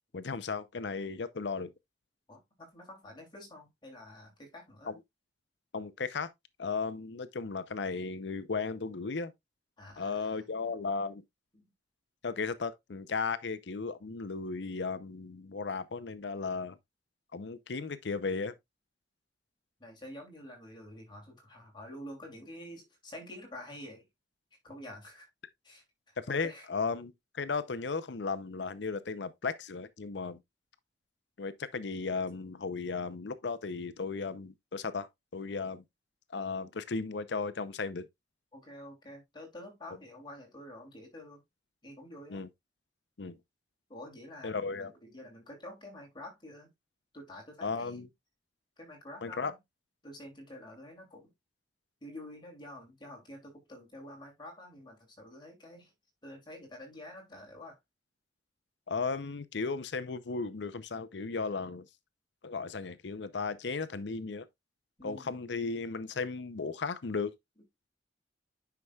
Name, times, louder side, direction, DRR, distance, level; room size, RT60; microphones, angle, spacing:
voice 1, 0.1-1.7 4.9-5.0 5.7-6.3 6.6-9.3 10.0-11.2 12.2-16.8 17.3-18.5 26.3-30.4 31.4-35.8 36.3-38.1 42.3-42.5 43.2-43.4 44.4-44.9 47.6-48.1 49.2-49.5 58.9-61.9 62.4-64.5 65.0-67.3, left 4 dB, 75° left, 0.7 m, -35 dB
voice 2, 2.3-5.0 9.8-10.4 11.5-11.7 19.8-24.1 24.6-25.3 25.6-26.7 38.5-41.4 41.8-42.5 43.9-46.7 47.1-48.1 48.8-49.6 50.0-51.3 52.0-55.9 56.2-57.8 65.0-65.4, left 1 dB, 25° left, 2.8 m, -48 dB
9.7 x 5.8 x 2.3 m
head